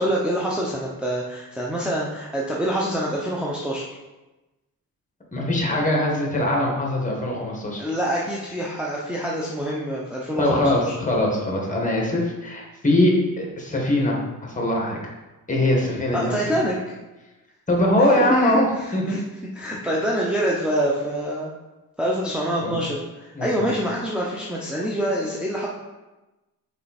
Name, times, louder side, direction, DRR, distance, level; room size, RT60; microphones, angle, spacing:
voice 1, 0.0-3.8 7.8-10.9 16.1-16.8 18.1-19.2 19.6-21.5 22.0-25.7, equal, 5° right, -5 dB, 0.9 m, -26 dB
voice 2, 5.3-7.8 10.4-15.1 15.5-16.4 17.7-18.6 18.9-19.2 22.6-22.7 23.3-23.7, left 1 dB, 20° left, -1 dB, 1.8 m, -22 dB
5.5 x 4.7 x 4.3 m, 1.1 s
cardioid pair, 90°, 34 cm